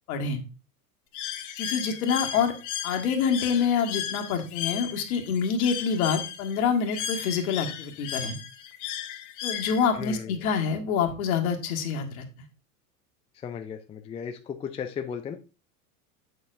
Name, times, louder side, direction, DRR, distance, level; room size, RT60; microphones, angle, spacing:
voice 1, 0.1-0.4 1.6-2.5 2.8-8.4 9.4-12.2, left 6 dB, 65° left, 4 dB, 1.7 m, -26 dB
Bird, 1.1-10.1, left 9 dB, 40° left, 1.1 m, -35 dB
voice 2, 9.9-10.4 13.3-15.4, left 7 dB, 15° left, 6 dB, 0.4 m, -36 dB
7.8 x 6.9 x 2.6 m, 0.31 s
hypercardioid pair, 95°, 45 cm